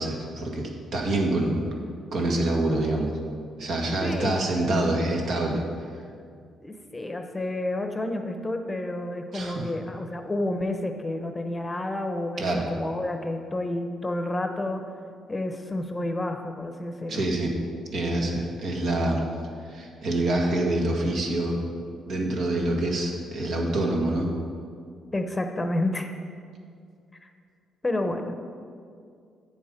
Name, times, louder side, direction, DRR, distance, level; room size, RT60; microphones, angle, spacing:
voice 1, 0.0-1.7 2.1-3.1 3.6-5.6 9.3-9.6 12.4-12.6 17.1-17.5 17.9-19.2 19.7-21.6 22.0-24.3, right 1 dB, 65° right, 0 dB, 1.7 m, -26 dB
voice 2, 4.0-4.5 6.6-14.8 15.3-17.2 25.1-26.1 27.8-28.4, left 1 dB, 20° left, 6 dB, 0.8 m, -30 dB
9.1 x 7.1 x 5.1 m, 2.3 s
cardioid pair, 90°, 0 cm